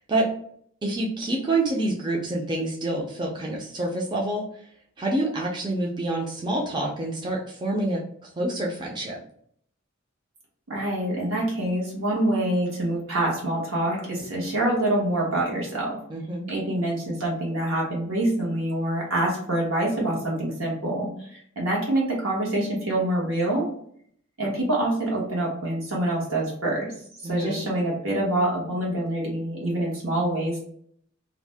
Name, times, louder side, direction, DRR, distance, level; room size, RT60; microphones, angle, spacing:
voice 1, 0.8-4.4 5.0-8.0 8.4-9.2 16.1-16.5 27.2-27.6, right 2 dB, 20° right, -2 dB, 0.4 m, -27 dB
voice 2, 10.7-16.0 16.5-23.7 24.4-26.9 27.2-30.6, right 1 dB, 75° right, -3 dB, 1.1 m, -26 dB
2.6 x 2.0 x 3.3 m, 0.63 s
head